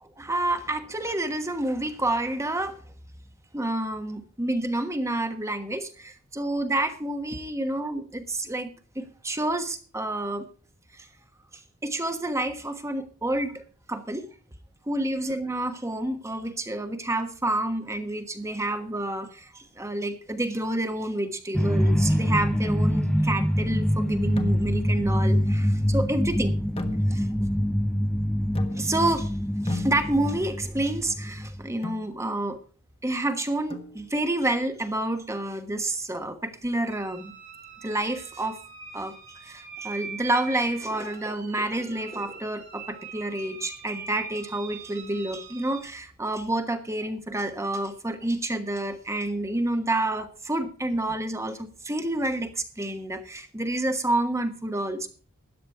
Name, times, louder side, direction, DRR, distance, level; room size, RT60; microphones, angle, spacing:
voice 1, 0.0-2.8 3.5-10.4 11.8-13.6 13.9-14.3 14.9-26.5 27.1-27.3 28.7-29.3 29.6-32.6 33.0-37.3 37.8-38.6 38.9-39.1 39.4-55.1, right 1 dB, 15° right, 1.3 m, -29 dB
sound 1, 21.5-31.7, equal, 5° left, 0.5 m, -25 dB
sound 2, 24.4-25.0 26.8-27.5 28.5-29.1 29.7-30.5 31.8-32.2 33.7-34.3, left 3 dB, 25° left, 1.4 m, -37 dB
sound 3, 36.9-45.8, right 5 dB, 55° right, 2.9 m, -42 dB
13.5 x 9.7 x 4.6 m
head